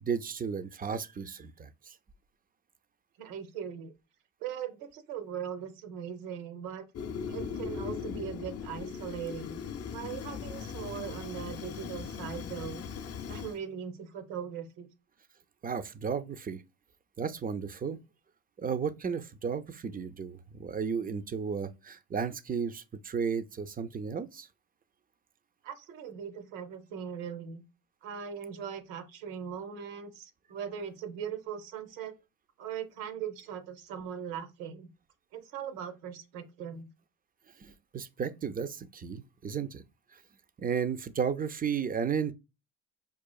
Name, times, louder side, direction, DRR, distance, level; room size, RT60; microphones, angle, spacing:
voice 1, 0.0-1.9 15.6-16.6 17.2-18.0 18.6-24.5 37.6-39.8 40.6-42.3, right 6 dB, 25° right, 0.4 m, -34 dB
voice 2, 3.2-3.9 4.4-6.9 7.3-9.6 9.9-12.8 13.3-14.9 25.6-27.6 28.0-32.1 32.6-34.9 35.3-36.9, right 8 dB, 85° right, 0.8 m, -40 dB
Fire, 6.9-13.6, left 7 dB, 40° left, 0.5 m, -39 dB
4.8 x 2.4 x 2.2 m
supercardioid pair, 70°, 41 cm